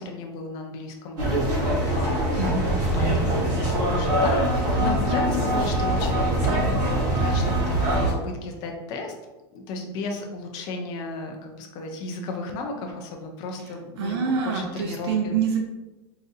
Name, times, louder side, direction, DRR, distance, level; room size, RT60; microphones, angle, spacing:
voice 1, 0.0-1.6 1.9-2.4 3.0-9.1 9.5-15.4, left 2 dB, 30° left, 2 dB, 0.4 m, -34 dB
sound 1, 1.2-8.1, right 1 dB, 30° right, 1.0 m, -23 dB
voice 2, 2.4-3.3 14.0-15.6, right 5 dB, 75° right, 1 dB, 0.5 m, -26 dB
3.8 x 2.5 x 2.6 m, 1.1 s
supercardioid pair, 175°, 14 cm